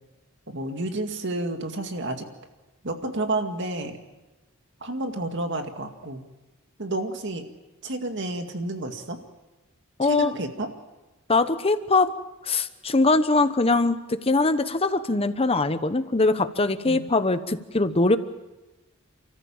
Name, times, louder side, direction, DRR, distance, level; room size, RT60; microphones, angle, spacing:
voice 1, 0.5-2.3 2.8-4.0 4.8-6.2 6.8-7.5 7.8-9.2 10.0-10.7 16.8-17.1, right 2 dB, 60° right, 5 dB, 2.1 m, -30 dB
voice 2, 10.0-10.3 11.3-12.1 12.5-18.2, left 3 dB, 30° left, 11 dB, 1.0 m, -22 dB
29.5 x 14.0 x 7.2 m, 1.1 s
head